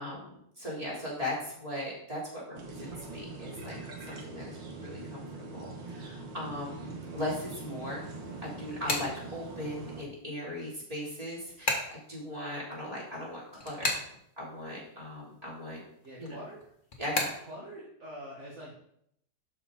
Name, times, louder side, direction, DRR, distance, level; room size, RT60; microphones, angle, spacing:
voice 1, 0.0-8.0 8.4-11.8 12.1-14.0 14.4-15.8 16.2-16.3 17.0-17.3, left 1 dB, 20° right, -6 dB, 3.4 m, -38 dB
sound 1, 2.6-10.0, right 3 dB, 85° right, 2.1 m, -43 dB
sound 2, 8.0-9.9 10.3-15.0 15.2-17.5, left 2 dB, 30° left, 1.3 m, -34 dB
voice 2, 16.0-16.6 17.5-18.7, equal, 40° right, -4 dB, 1.9 m, -44 dB
12.0 x 5.0 x 3.9 m, 0.72 s
omnidirectional pair, 2.0 m